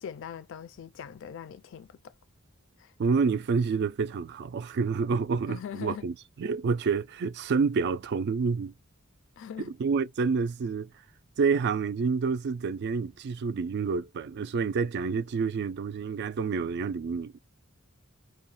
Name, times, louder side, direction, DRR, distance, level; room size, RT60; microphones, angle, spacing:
voice 1, 0.0-2.1 2.8-2.9 5.5-6.1 9.4-9.7, left 8 dB, 60° left, 0.3 m, -41 dB
voice 2, 3.0-8.7 9.6-10.9 11.4-17.4, right 5 dB, 50° right, 0.3 m, -28 dB
2.4 x 2.1 x 2.6 m
head